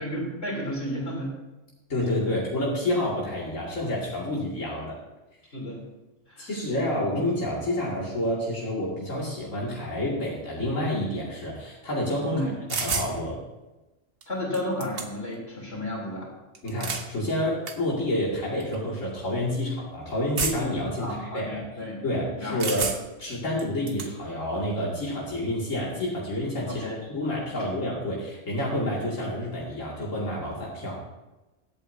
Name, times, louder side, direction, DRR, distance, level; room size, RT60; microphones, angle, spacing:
voice 1, 0.0-1.3 5.5-5.8 6.3-6.5 12.3-12.5 14.3-16.3 21.0-22.0 22.4-22.8 26.7-27.0, left 1 dB, 55° left, -3 dB, 3.7 m, -32 dB
voice 2, 1.9-5.0 6.4-13.4 16.6-21.6 22.0-22.9 23.2-31.0, left 1 dB, 90° left, -5 dB, 2.8 m, -29 dB
sound 1, 12.7-13.1 14.2-14.3 14.5-15.3 16.5-17.1 17.7-17.8 18.6-18.8 20.4-20.8 22.6-23.2 23.6-24.1, right 4 dB, 50° right, 1.2 m, -30 dB
23.0 x 8.6 x 2.7 m, 1.1 s
omnidirectional pair, 1.3 m